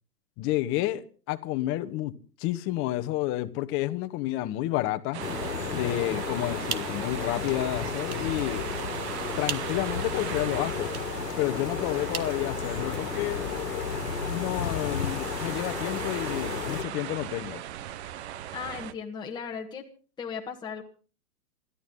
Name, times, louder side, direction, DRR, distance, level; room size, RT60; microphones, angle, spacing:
voice 1, 0.4-5.2 5.7-8.6 9.4-10.9 11.4-17.6, left 15 dB, 25° left, 1.2 m, -30 dB
sound 1, 5.1-18.9, right 11 dB, 45° right, 1.1 m, -38 dB
sound 2, 5.2-16.8, left 7 dB, 90° left, 1.7 m, -33 dB
sound 3, 6.4-13.2, right 8 dB, 65° right, 2.0 m, -42 dB
voice 2, 18.5-19.9 20.2-20.8, left 6 dB, 10° left, 1.6 m, -36 dB
28.0 x 13.0 x 3.9 m
hypercardioid pair, 135°, 47 cm